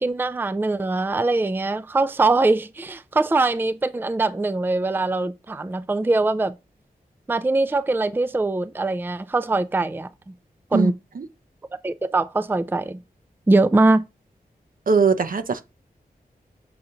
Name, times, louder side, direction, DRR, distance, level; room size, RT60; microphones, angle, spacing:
voice 1, 0.0-6.5 7.3-10.1 10.7-10.9 11.8-13.0 13.5-14.0, right 2 dB, 15° right, 0.4 m, -22 dB
voice 2, 10.7-11.2 14.9-15.7, right 5 dB, 60° right, 0.8 m, -21 dB
7.0 x 4.2 x 3.9 m
wide cardioid pair, 105°, 16 cm